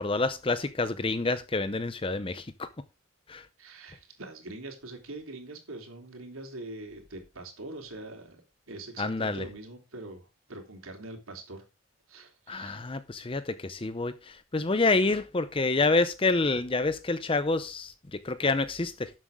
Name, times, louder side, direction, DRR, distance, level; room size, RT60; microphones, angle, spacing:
voice 1, 0.0-2.7 3.3-3.4 9.0-9.5 12.5-19.1, left 3 dB, 25° left, 0.6 m, -28 dB
voice 2, 3.6-8.4 8.7-11.6 12.1-12.8, right 2 dB, 90° right, 3.4 m, -43 dB
12.5 x 7.6 x 3.6 m
head